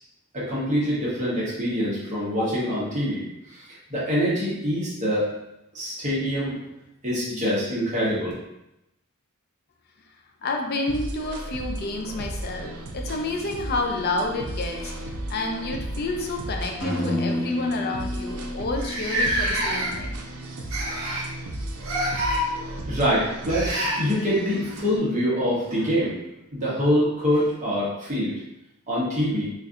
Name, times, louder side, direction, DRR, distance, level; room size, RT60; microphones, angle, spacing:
voice 1, 0.3-5.3 5.7-6.6 7.0-8.3 22.5-26.2 26.5-28.3 28.9-29.5, equal, 35° right, -8 dB, 0.9 m, -25 dB
voice 2, 10.4-14.9 15.3-20.2, left 2 dB, 45° left, 3 dB, 0.4 m, -29 dB
sound 1, 10.9-25.0, right 1 dB, 85° right, 0.5 m, -35 dB
sound 2, 14.8-15.3 16.4-16.5 16.9-17.1 17.8-17.9 18.1-18.2 18.8-20.1 20.7-21.3 21.8-22.4 23.5-24.0 26.1-26.2 27.3-27.4, right 1 dB, 65° right, 1.0 m, -27 dB
sound 3, 16.8-20.6, left 1 dB, 85° left, 1.0 m, -31 dB
4.1 x 2.5 x 2.4 m, 0.87 s
head